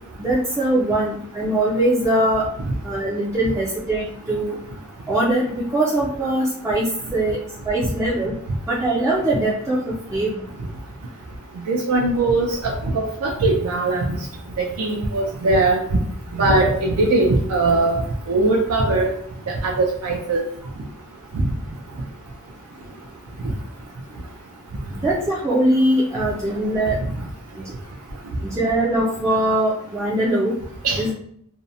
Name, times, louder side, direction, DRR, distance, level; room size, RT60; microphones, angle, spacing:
voice 1, 0.2-2.5 2.8-4.6 5.1-7.4 7.7-8.3 8.7-9.8 10.1-10.4 16.6-16.7 24.9-27.0 28.4-30.5 31.0-31.1, right 1 dB, 15° right, -6 dB, 0.3 m, -21 dB
voice 2, 11.7-14.2 14.8-15.8 16.3-18.0 18.3-19.1 19.6-20.4 30.8-31.0, right 2 dB, 85° right, 0 dB, 0.4 m, -20 dB
2.6 x 2.0 x 2.6 m, 0.66 s
head